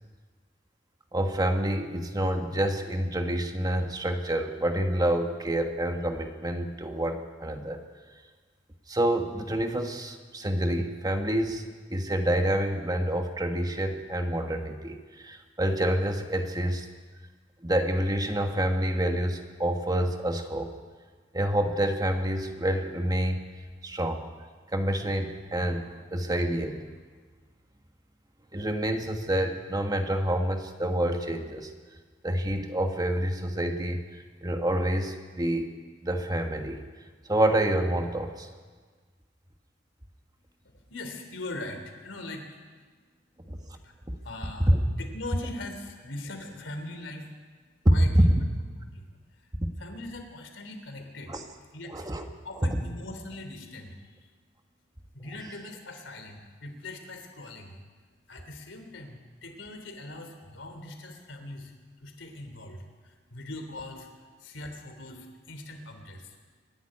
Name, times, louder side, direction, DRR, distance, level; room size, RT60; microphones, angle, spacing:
voice 1, 1.1-7.8 8.9-11.6 11.9-16.9 17.6-20.7 21.3-23.4 23.8-24.2 24.7-26.9 28.5-31.7 32.2-35.7 36.0-36.8 37.2-38.5 43.5-43.6 44.7-44.8 48.1-48.2 51.3-51.4 51.9-52.3, right 1 dB, 20° right, 5 dB, 1.4 m, -27 dB
voice 2, 40.9-42.6 43.8-44.0 44.2-44.7 45.0-47.3 47.9-48.1 48.8-49.5 49.8-51.4 51.7-52.0 52.4-54.2 55.1-57.8 58.3-61.7 62.0-66.4, left 2 dB, 85° left, 5 dB, 3.2 m, -41 dB
24.0 x 11.5 x 10.0 m, 1.5 s
head